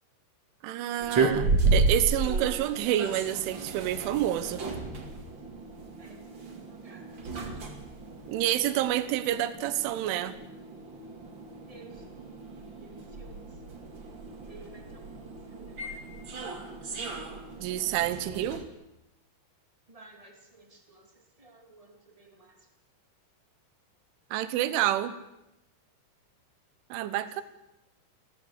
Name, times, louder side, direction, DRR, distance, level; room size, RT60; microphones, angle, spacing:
voice 1, 0.6-4.6 8.3-10.4 17.6-18.7 24.3-25.2 26.9-27.4, right 12 dB, 85° right, 3.6 m, -28 dB
sound 1, 1.0-18.6, right 3 dB, 40° right, 1.7 m, -33 dB
voice 2, 6.0-6.4 6.8-7.0 11.7-12.0 12.8-13.4 14.5-15.1 15.5-16.0 19.9-21.0 21.4-22.5, right 2 dB, 60° right, 0.3 m, -53 dB
25.0 x 16.5 x 8.2 m
omnidirectional pair, 5.5 m